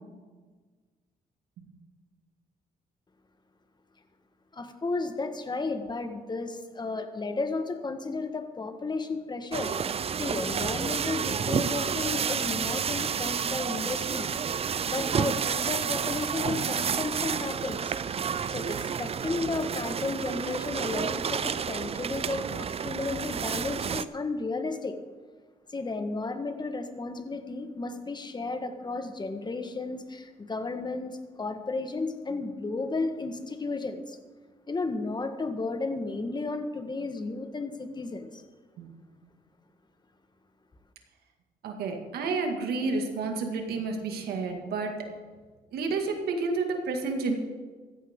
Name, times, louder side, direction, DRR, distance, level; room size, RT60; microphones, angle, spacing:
voice 1, 4.5-9.8 10.2-14.4 14.8-17.9 18.5-25.0 25.7-34.2 34.7-38.4, left 3 dB, 30° left, 7 dB, 1.6 m, -33 dB
sound 1, 9.5-24.0, right 7 dB, 40° right, 0.5 m, -30 dB
voice 2, 41.6-44.9 45.7-47.3, right 4 dB, 85° right, 3 dB, 2.2 m, -30 dB
16.0 x 14.0 x 3.8 m, 1.4 s
cardioid pair, 80°, 16 cm